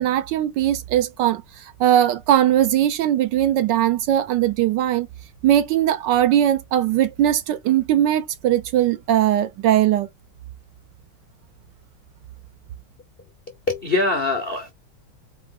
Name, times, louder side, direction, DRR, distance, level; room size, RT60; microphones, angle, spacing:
voice 1, 0.0-5.1 5.4-10.1, right 11 dB, 75° right, 1.1 m, -20 dB
voice 2, 13.5-14.7, left 3 dB, 60° left, 0.6 m, -23 dB
4.7 x 2.7 x 3.6 m
omnidirectional pair, 2.2 m